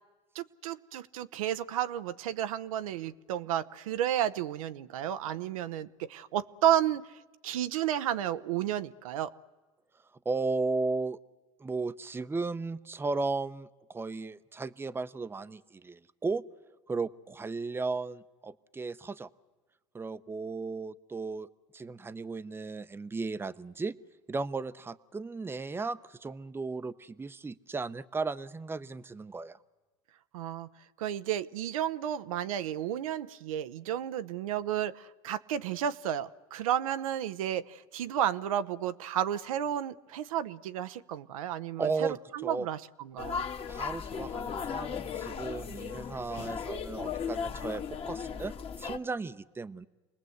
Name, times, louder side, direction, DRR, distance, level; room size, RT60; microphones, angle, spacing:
voice 1, 0.3-7.0 7.4-9.3 30.3-30.7 31.0-41.9 42.3-43.4, right 10 dB, 85° right, 13 dB, 0.8 m, -32 dB
voice 2, 10.2-11.2 11.6-16.4 16.9-19.3 19.9-21.5 21.7-23.9 24.3-29.6 41.8-42.7 43.7-49.9, right 3 dB, 15° right, 13 dB, 0.7 m, -35 dB
sound 1, 43.2-49.0, left 6 dB, 35° left, 1.7 m, -36 dB
28.0 x 20.0 x 8.0 m, 1.2 s
hypercardioid pair, 95°, 17 cm